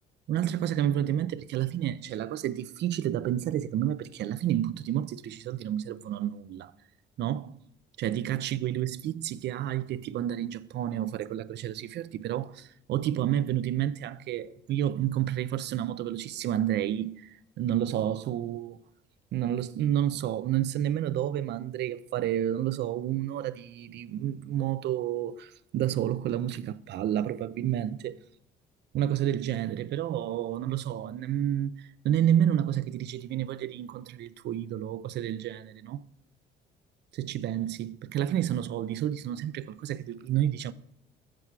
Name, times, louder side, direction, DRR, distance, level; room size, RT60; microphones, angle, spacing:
voice 1, 0.3-6.7 7.2-7.6 8.0-18.8 19.3-28.2 28.9-31.8 32.0-36.0 37.2-40.7, right 11 dB, 60° right, 0.4 m, -30 dB
7.8 x 5.8 x 4.6 m
cardioid pair, 125°, 20 cm